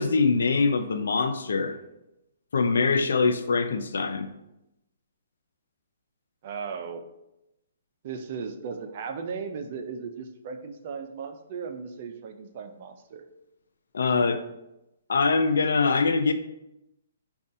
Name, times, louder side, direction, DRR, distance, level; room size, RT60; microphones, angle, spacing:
voice 1, 0.0-1.8 2.5-4.3 13.9-14.4 15.1-16.3, left 4 dB, 80° left, 8 dB, 0.4 m, -23 dB
voice 2, 6.4-7.1 8.0-13.2, right 5 dB, 50° right, 6 dB, 0.4 m, -36 dB
5.0 x 2.3 x 2.6 m, 0.89 s
hypercardioid pair, 145°, 0 cm